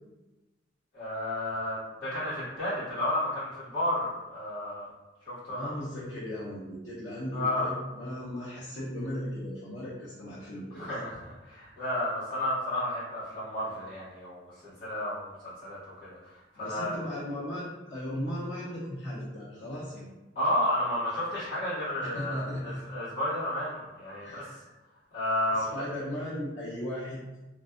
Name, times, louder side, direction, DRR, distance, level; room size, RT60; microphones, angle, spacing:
voice 1, 0.9-4.9 5.3-5.8 7.3-7.7 10.7-17.0 20.3-24.5 25.1-25.7, left 1 dB, 45° left, -13 dB, 1.3 m, -32 dB
voice 2, 5.5-10.9 16.5-20.1 22.0-22.8 24.2-24.6 25.5-27.2, equal, 70° left, -8 dB, 0.6 m, -37 dB
2.6 x 2.2 x 2.3 m, 1.1 s
head